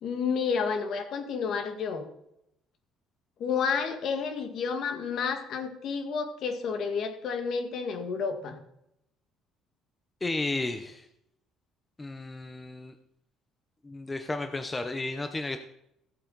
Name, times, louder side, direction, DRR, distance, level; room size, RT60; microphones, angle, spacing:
voice 1, 0.0-2.0 3.4-8.6, left 5 dB, 50° left, 7 dB, 1.8 m, -30 dB
voice 2, 10.2-11.1 12.0-13.0 13.8-15.6, left 2 dB, 15° left, 7 dB, 0.6 m, -33 dB
15.5 x 8.1 x 4.0 m, 0.78 s
cardioid pair, 145°, 0 cm